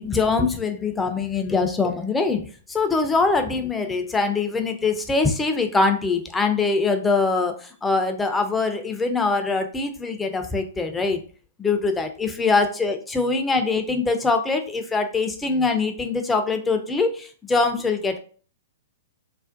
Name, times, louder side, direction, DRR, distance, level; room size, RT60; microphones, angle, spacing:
voice 1, 0.0-11.2 11.6-18.2, left 4 dB, 10° left, 6 dB, 0.4 m, -23 dB
2.4 x 2.1 x 2.4 m, 0.42 s
hypercardioid pair, 115°, 0 cm